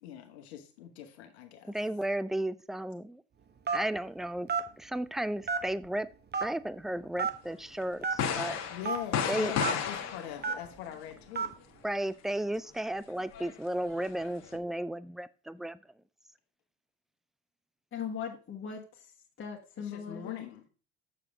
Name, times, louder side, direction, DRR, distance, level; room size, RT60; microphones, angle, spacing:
voice 1, 0.0-1.8 8.7-11.5 19.8-20.7, left 10 dB, 85° left, 5 dB, 1.2 m, -42 dB
voice 2, 1.7-3.2 3.7-4.5 4.8-6.1 6.4-8.6 9.3-9.5 11.8-15.8, right 1 dB, ahead, 16 dB, 0.4 m, -34 dB
Telephone, 3.7-4.0 4.5-4.7 5.5-5.9 6.3-6.5 7.2-7.4 8.0-8.2 8.8-9.0 9.6-9.7 10.4-10.7 11.4-11.5, right 5 dB, 30° right, 1.2 m, -30 dB
sound 1, 7.8-7.9 8.2-10.9 13.2-14.6, left 7 dB, 55° left, 1.5 m, -33 dB
voice 3, 17.9-19.1 19.4-20.5, left 7 dB, 40° left, 0 dB, 1.7 m, -39 dB
6.8 x 6.5 x 3.6 m, 0.35 s
hypercardioid pair, 70°, 32 cm